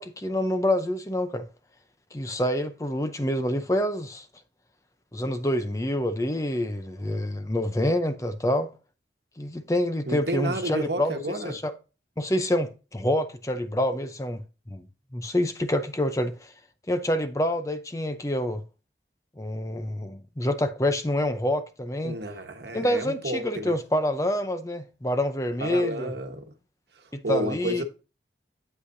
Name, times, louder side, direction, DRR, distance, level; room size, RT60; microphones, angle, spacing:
voice 1, 0.0-1.4 2.1-4.3 5.1-8.7 9.4-11.2 11.4-11.7 12.2-14.8 15.1-16.5 16.9-18.6 19.4-22.2 22.7-26.1 27.1-27.8, left 1 dB, 20° left, 0.6 m, -27 dB
voice 2, 10.1-11.6 22.0-23.8 25.6-26.5 27.2-27.8, right 2 dB, 70° right, 1.2 m, -31 dB
8.2 x 8.2 x 2.6 m
head